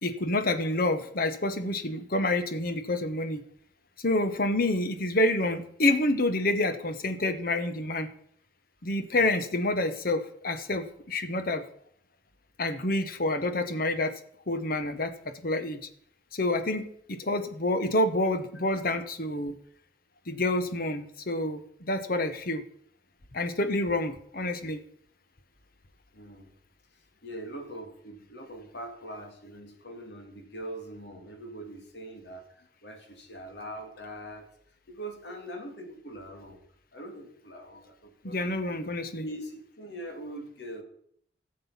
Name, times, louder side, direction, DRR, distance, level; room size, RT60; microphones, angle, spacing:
voice 1, 0.0-3.4 4.0-8.1 8.8-11.6 12.6-14.1 14.5-15.8 16.3-19.5 20.3-22.6 23.3-24.8 38.2-39.2, left 2 dB, 50° left, 10 dB, 1.1 m, -28 dB
voice 2, 26.1-26.5 27.2-34.5 34.9-36.6 36.9-38.4 39.2-40.8, right 1 dB, 70° left, 4 dB, 2.4 m, -42 dB
13.5 x 7.7 x 5.7 m, 0.66 s
head